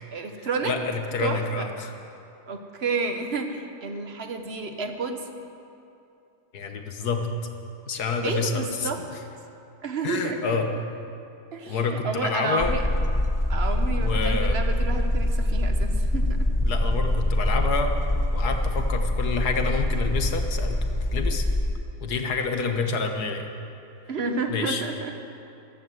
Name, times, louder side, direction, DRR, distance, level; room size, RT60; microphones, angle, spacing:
voice 1, 0.1-0.7 1.2-1.7 2.5-5.3 8.2-9.0 9.8-10.6 11.5-12.8 13.5-16.5 24.1-25.2, right 4 dB, 45° right, 6 dB, 1.3 m, -30 dB
voice 2, 0.6-1.9 6.5-7.3 7.9-8.9 10.0-10.7 11.7-12.7 14.0-14.6 16.7-17.9 18.3-20.8 21.1-21.5 22.0-23.5 24.5-24.8, left 4 dB, 80° left, 5 dB, 1.8 m, -28 dB
sound 1, 12.6-21.7, left 1 dB, 20° left, 0.5 m, -24 dB
14.5 x 12.0 x 7.8 m, 2.7 s
omnidirectional pair, 1.6 m